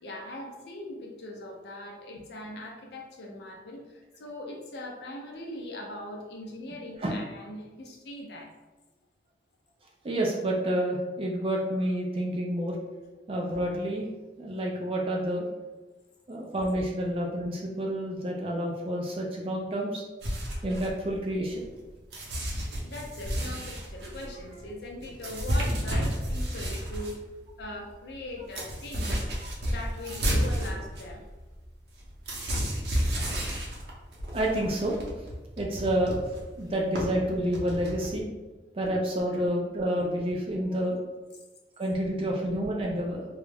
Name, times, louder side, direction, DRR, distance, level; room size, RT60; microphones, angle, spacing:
voice 1, 0.0-8.5 22.8-27.2 27.6-29.3 29.6-31.2 36.6-36.7 39.3-39.4, left 1 dB, 70° left, 0 dB, 0.5 m, -40 dB
voice 2, 10.0-12.8 13.3-14.1 14.4-15.5 16.3-20.0 20.6-21.6 34.3-35.0 35.6-36.1 36.6-38.3 38.7-41.0 41.8-43.3, right 1 dB, 30° right, -1 dB, 0.3 m, -29 dB
sound 1, 20.2-21.8 22.1-27.1 27.6-27.7 27.9-38.1, equal, 70° right, 0.6 m, -31 dB
2.3 x 2.0 x 3.3 m, 1.2 s
head